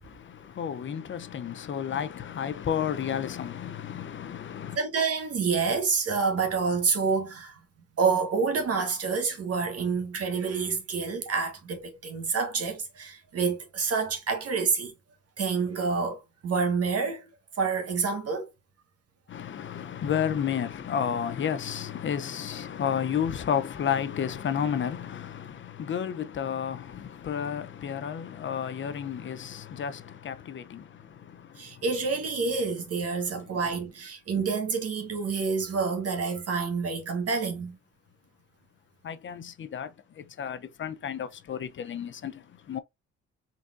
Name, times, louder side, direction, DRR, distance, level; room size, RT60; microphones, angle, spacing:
voice 1, 0.0-4.8 19.3-31.8 39.0-42.8, left 8 dB, 40° left, 0.5 m, -32 dB
voice 2, 4.7-7.6 8.0-14.9 15.4-17.3 17.6-18.5 31.6-37.8, right 5 dB, 50° right, 1.5 m, -28 dB
4.0 x 3.5 x 2.4 m
cardioid pair, 90°, 30 cm